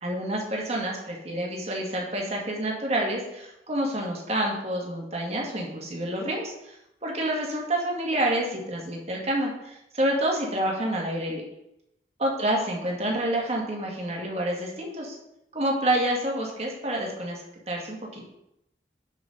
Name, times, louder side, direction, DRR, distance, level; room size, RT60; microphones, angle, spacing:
voice 1, 0.0-6.7 7.0-11.4 12.2-15.1 15.5-18.2, right 1 dB, 40° right, -1 dB, 1.8 m, -28 dB
7.3 x 6.1 x 3.9 m, 0.83 s
head